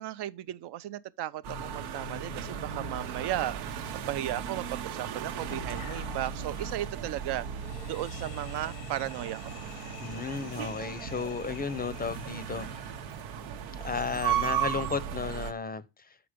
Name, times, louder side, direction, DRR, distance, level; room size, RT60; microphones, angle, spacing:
voice 1, 0.0-7.4 7.8-9.6, right 13 dB, 55° right, 0.6 m, -35 dB
sound 1, 1.4-15.5, right 9 dB, 85° right, 1.0 m, -36 dB
sound 2, 1.5-15.1, left 12 dB, 85° left, 0.9 m, -49 dB
voice 2, 10.0-12.7 13.8-16.2, left 5 dB, 20° left, 0.6 m, -34 dB
6.9 x 5.1 x 5.0 m
supercardioid pair, 90°, 48 cm